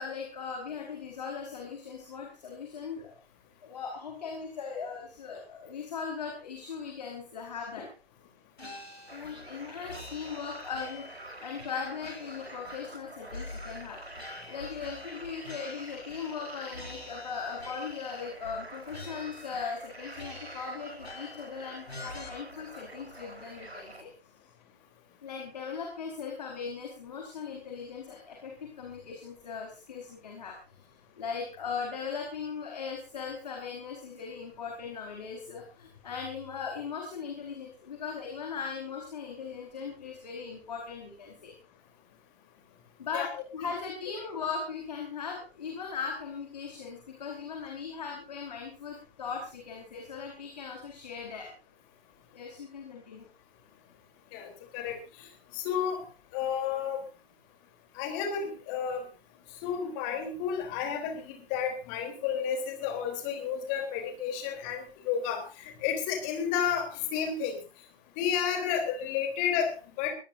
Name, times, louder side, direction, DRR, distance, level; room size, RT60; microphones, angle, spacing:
voice 1, 0.0-3.2 3.6-7.9 9.1-11.1 11.4-14.0 14.5-24.1 25.2-30.6 31.2-41.5 43.0-51.5 52.3-53.3, left 5 dB, 40° left, 1 dB, 4.8 m, -39 dB
sound 1, 8.6-9.6 9.9-11.2 11.6-13.0 13.3-16.5 16.7-18.1 18.4-18.6 18.9-19.9 20.2-21.5 21.9-22.3, left 2 dB, 75° left, 5.4 m, -46 dB
sound 2, 9.1-24.0, right 1 dB, 80° right, 4.4 m, -47 dB
voice 2, 54.3-55.3 55.5-56.0 56.3-57.0 58.0-59.0 59.6-67.6 68.2-70.1, left 7 dB, 20° left, 5 dB, 3.6 m, -31 dB
22.0 x 18.0 x 2.7 m, 0.33 s
figure-of-eight pair, 140°, 31 cm